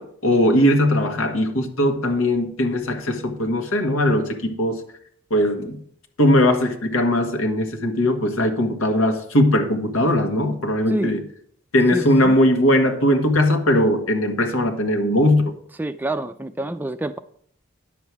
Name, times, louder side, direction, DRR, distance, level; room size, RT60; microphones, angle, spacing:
voice 1, 0.0-4.8 5.3-5.8 6.2-11.2 11.7-15.5, left 1 dB, 90° left, 1.7 m, -19 dB
voice 2, 11.9-12.4 15.8-17.2, right 1 dB, 10° right, 0.3 m, -27 dB
10.0 x 7.4 x 4.8 m
head